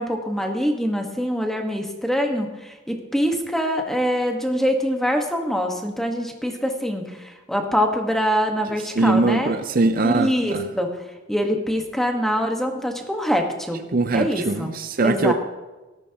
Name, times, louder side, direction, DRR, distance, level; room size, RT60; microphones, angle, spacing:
voice 1, 0.0-7.1 7.5-9.5 10.0-10.9 11.3-13.8 14.1-14.7 15.0-15.3, equal, ahead, 3 dB, 1.3 m, -24 dB
voice 2, 8.7-10.7 13.9-15.3, right 3 dB, 50° right, 9 dB, 0.6 m, -21 dB
18.0 x 13.0 x 2.9 m, 1.1 s
head